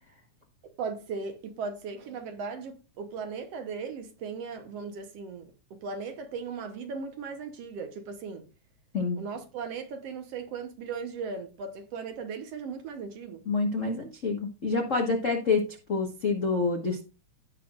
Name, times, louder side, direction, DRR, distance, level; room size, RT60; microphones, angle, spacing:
voice 1, 0.8-8.5 9.2-13.4, right 5 dB, 65° right, 1.9 m, -37 dB
voice 2, 13.5-17.0, left 4 dB, 60° left, 0.7 m, -27 dB
16.5 x 5.7 x 2.4 m
omnidirectional pair, 3.4 m